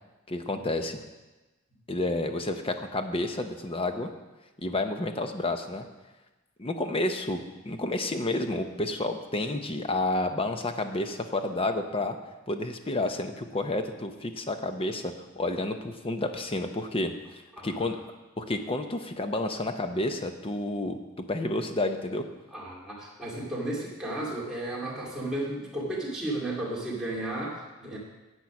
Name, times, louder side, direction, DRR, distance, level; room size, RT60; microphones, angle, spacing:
voice 1, 0.3-1.0 1.9-4.1 4.6-5.9 6.6-12.2 12.5-18.0 18.4-22.2, left 2 dB, 25° left, 7 dB, 0.8 m, -30 dB
voice 2, 17.5-17.9 22.5-28.0, right 1 dB, 5° right, -5 dB, 2.5 m, -34 dB
10.5 x 8.1 x 5.9 m, 1.1 s
head